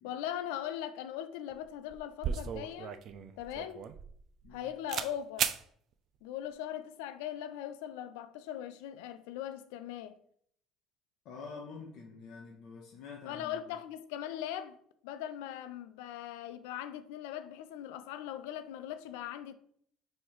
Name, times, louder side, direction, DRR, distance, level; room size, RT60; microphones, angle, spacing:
voice 1, 0.0-3.0 3.4-3.8 4.5-5.5 6.2-10.1 13.3-14.8 15.0-19.5, left 11 dB, 80° left, 0.3 m, -40 dB
sound 1, 1.5-1.6 1.9-4.6 4.9-5.1 5.4-5.6, right 8 dB, 60° right, 0.3 m, -35 dB
voice 2, 11.2-13.6, left 4 dB, 65° left, 0.7 m, -47 dB
3.1 x 2.7 x 4.5 m
hypercardioid pair, 70°, 0 cm